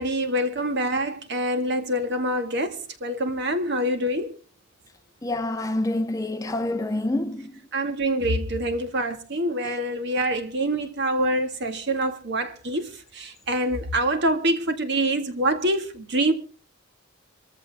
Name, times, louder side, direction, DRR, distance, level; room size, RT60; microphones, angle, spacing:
voice 1, 0.0-4.4 7.7-16.3, right 1 dB, 55° right, 2.0 m, -25 dB
voice 2, 5.2-7.5, left 1 dB, 15° left, 0.9 m, -27 dB
26.0 x 14.5 x 2.3 m
head